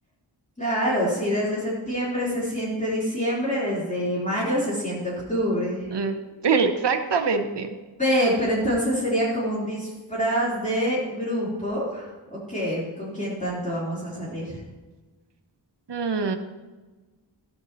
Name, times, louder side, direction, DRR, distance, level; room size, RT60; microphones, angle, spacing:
voice 1, 0.6-5.9 8.0-14.6, equal, 15° left, -8 dB, 3.9 m, -26 dB
voice 2, 6.4-7.7 15.9-16.4, right 5 dB, 70° right, 6 dB, 1.0 m, -23 dB
14.0 x 12.0 x 3.1 m, 1.2 s
wide cardioid pair, 80°, 43 cm